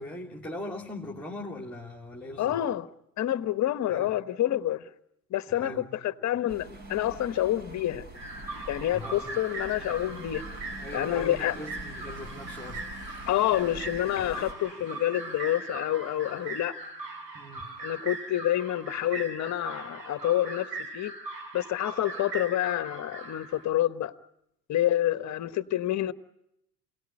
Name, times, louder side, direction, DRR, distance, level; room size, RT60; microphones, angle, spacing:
voice 1, 0.0-2.6 3.9-4.1 5.5-6.0 6.2-6.4 8.9-9.3 10.8-12.9 17.3-17.7, left 1 dB, 5° left, 2.9 m, -40 dB
voice 2, 2.4-2.9 3.2-4.8 5.3-8.0 8.7-10.5 10.9-11.5 13.3-16.8 17.8-21.1 21.5-24.1 24.7-26.1, left 13 dB, 35° left, 1.3 m, -28 dB
sound 1, 6.5-14.5, right 1 dB, 35° right, 5.1 m, -44 dB
sound 2, 8.1-23.7, right 2 dB, 90° right, 4.8 m, -40 dB
28.0 x 18.5 x 9.9 m
hypercardioid pair, 80°, 49 cm